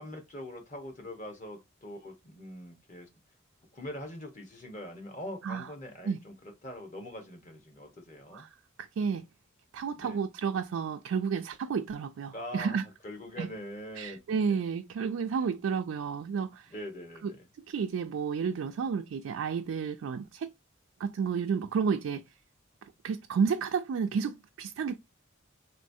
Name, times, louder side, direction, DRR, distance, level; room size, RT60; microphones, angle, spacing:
voice 1, 0.0-3.1 3.7-8.5 10.0-10.2 12.3-12.8 13.0-14.2 14.5-14.6 16.7-17.5, left 1 dB, 40° left, 1.1 m, -43 dB
voice 2, 8.8-9.2 9.7-12.9 13.4-13.5 14.0-16.7 17.2-17.3 17.7-20.5 21.0-22.2 22.8-25.0, right 6 dB, 85° right, 0.3 m, -31 dB
3.1 x 3.1 x 2.6 m
head